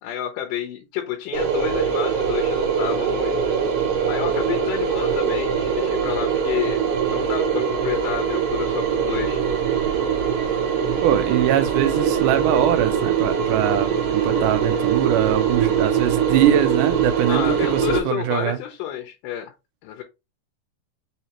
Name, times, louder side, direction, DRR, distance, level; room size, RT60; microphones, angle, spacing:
voice 1, 0.0-3.4 4.1-6.8 7.1-9.4 17.3-19.5 19.8-20.0, left 10 dB, 80° left, 2.3 m, -29 dB
sound 1, 1.3-18.0, right 7 dB, 60° right, 1.8 m, -22 dB
voice 2, 11.0-18.6, right 11 dB, 80° right, 2.0 m, -22 dB
5.6 x 3.1 x 2.9 m
omnidirectional pair, 3.9 m